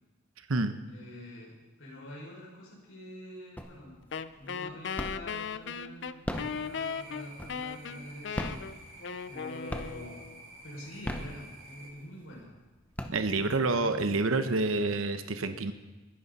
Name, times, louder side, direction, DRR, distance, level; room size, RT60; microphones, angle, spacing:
voice 1, 0.9-4.0 4.3-6.2 6.5-10.2 10.6-12.5 13.3-14.0, equal, 90° left, -3 dB, 5.7 m, -46 dB
sound 1, 3.6-4.1 4.4-5.4 6.1-7.8 8.3-9.4 9.7-10.2 10.8-11.9 12.4-12.5 12.8-13.7, equal, 10° left, 0.8 m, -37 dB
Wind instrument woodwind instrument, 4.1-10.4, left 6 dB, 55° left, 0.5 m, -37 dB
sound 2, 6.3-11.9, right 2 dB, 70° right, 4.1 m, -51 dB
voice 2, 13.1-15.7, right 3 dB, 85° right, 9 dB, 0.9 m, -28 dB
21.5 x 11.0 x 4.2 m, 1.2 s
head